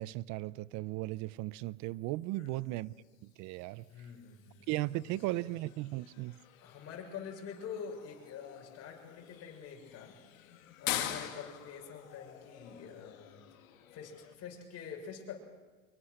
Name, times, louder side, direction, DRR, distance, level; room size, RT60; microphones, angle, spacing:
voice 1, 0.0-2.9 3.2-3.8 4.7-6.4, right 18 dB, 45° right, 0.7 m, -36 dB
voice 2, 2.3-2.8 3.9-5.6 6.6-10.2 10.8-13.4 13.9-15.4, left 7 dB, 40° left, 6.9 m, -46 dB
sound 1, 2.4-14.4, left 12 dB, 85° left, 2.8 m, -45 dB
25.5 x 23.0 x 6.6 m
supercardioid pair, 125°, 40 cm